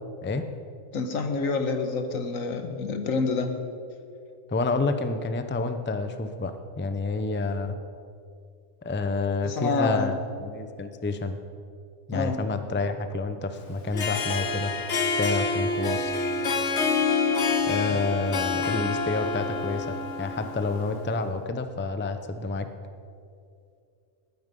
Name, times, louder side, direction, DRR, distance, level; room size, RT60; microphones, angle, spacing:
voice 1, 0.9-3.5 9.4-10.1 12.1-12.4 17.9-18.0, left 4 dB, 85° left, 7 dB, 1.6 m, -27 dB
voice 2, 4.5-7.7 8.8-11.4 12.1-14.7 15.0-16.1 17.7-19.9 20.2-22.7, left 3 dB, 15° left, 9 dB, 0.4 m, -29 dB
Harp, 13.8-21.1, left 4 dB, 60° left, 1.3 m, -27 dB
20.0 x 9.4 x 5.3 m, 2.5 s
omnidirectional pair, 1.4 m